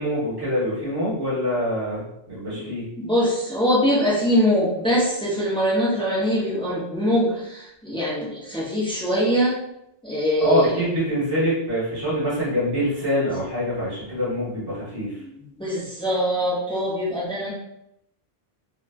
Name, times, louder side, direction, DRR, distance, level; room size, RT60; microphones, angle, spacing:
voice 1, 0.0-2.8 10.4-15.1, equal, 25° right, -10 dB, 1.2 m, -25 dB
voice 2, 3.0-9.6 10.0-10.8 15.2-17.5, equal, 5° left, -6 dB, 0.5 m, -23 dB
2.8 x 2.2 x 2.3 m, 0.79 s
omnidirectional pair, 1.1 m